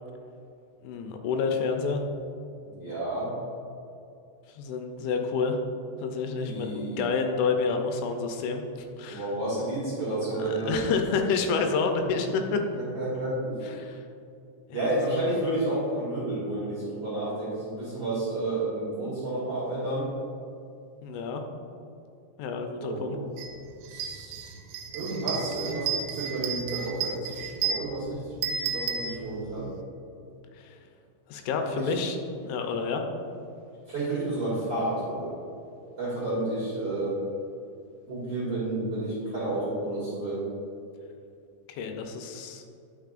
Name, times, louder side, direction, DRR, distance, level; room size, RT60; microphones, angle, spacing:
voice 1, 0.8-2.0 4.5-5.6 6.0-9.3 10.4-12.7 13.6-14.0 14.7-14.8 21.0-21.4 22.4-23.2 30.6-30.8 31.3-33.0 41.7-42.6, left 5 dB, 85° left, 5 dB, 3.0 m, -29 dB
voice 2, 2.6-3.3 6.4-7.1 9.1-10.7 12.7-13.6 14.7-20.1 22.8-23.2 23.9-24.5 24.9-29.7 31.7-31.9 33.9-35.3 36.0-37.2 38.1-40.4, right 2 dB, 55° right, -10 dB, 1.8 m, -31 dB
sound 1, 23.4-23.5 23.9-29.7, right 7 dB, 85° right, 2.8 m, -33 dB
10.0 x 6.1 x 2.5 m, 2.6 s
omnidirectional pair, 5.4 m